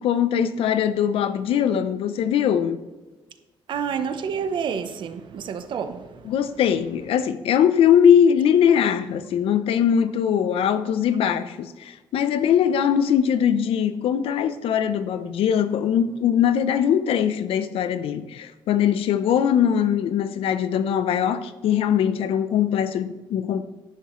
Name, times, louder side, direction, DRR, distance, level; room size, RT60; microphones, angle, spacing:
voice 1, 0.0-2.8 6.2-23.6, left 8 dB, 90° left, 0.7 m, -21 dB
voice 2, 3.7-6.3, right 7 dB, 60° right, 0.9 m, -29 dB
10.5 x 10.5 x 3.1 m
cardioid pair, 165°, 9 cm